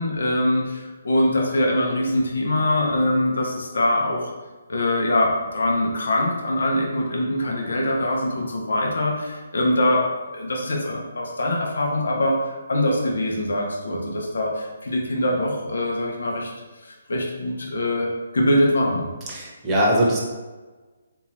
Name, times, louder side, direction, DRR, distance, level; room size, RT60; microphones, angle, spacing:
voice 1, 0.0-4.3 4.7-10.1 10.3-16.5 16.8-19.1, left 1 dB, 75° left, -1 dB, 0.8 m, -23 dB
voice 2, 19.3-20.2, equal, 15° right, -4 dB, 0.9 m, -21 dB
3.8 x 2.8 x 3.0 m, 1.3 s
hypercardioid pair, 150°, 0 cm